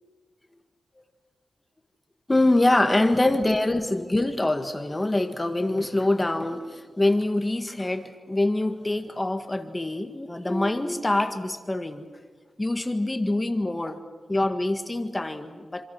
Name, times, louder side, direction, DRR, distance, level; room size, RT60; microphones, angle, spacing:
voice 1, 2.3-12.1 12.6-14.0 14.3-15.8, left 2 dB, 20° left, 8 dB, 1.8 m, -25 dB
27.5 x 26.5 x 6.3 m, 1.4 s
cardioid pair, 80°, 0 cm